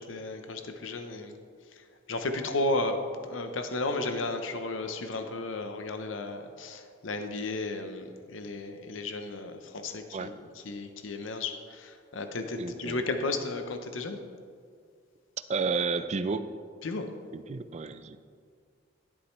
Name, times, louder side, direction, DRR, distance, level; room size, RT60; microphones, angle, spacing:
voice 1, 0.0-1.4 1.7-14.2 16.8-17.1, left 2 dB, 85° left, 7 dB, 0.7 m, -34 dB
voice 2, 12.6-13.0 15.5-16.5 17.3-18.2, right 4 dB, 35° right, 12 dB, 0.4 m, -31 dB
11.5 x 9.7 x 3.1 m, 2.1 s
head